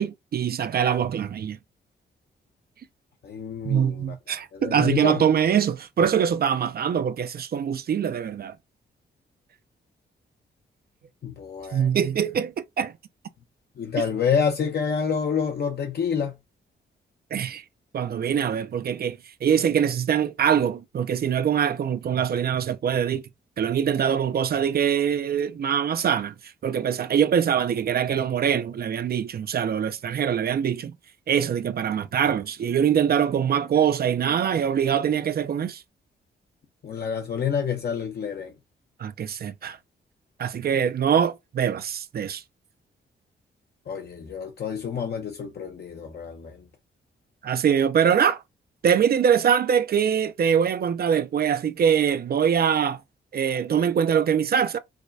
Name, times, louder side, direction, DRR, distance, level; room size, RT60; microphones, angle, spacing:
voice 1, 0.0-1.6 3.6-8.5 11.7-12.9 14.0-14.1 17.3-17.6 17.9-23.2 23.6-26.3 26.6-30.9 31.3-35.8 39.0-39.8 40.4-42.4 47.4-48.4 48.8-53.0 53.3-54.8, right 8 dB, 55° right, 0.5 m, -23 dB
voice 2, 3.2-4.1 4.5-5.2 11.2-11.9 13.8-16.3 36.8-38.5 43.9-46.6, left 6 dB, 55° left, 0.7 m, -28 dB
4.8 x 2.2 x 2.6 m
cardioid pair, 95°, 20 cm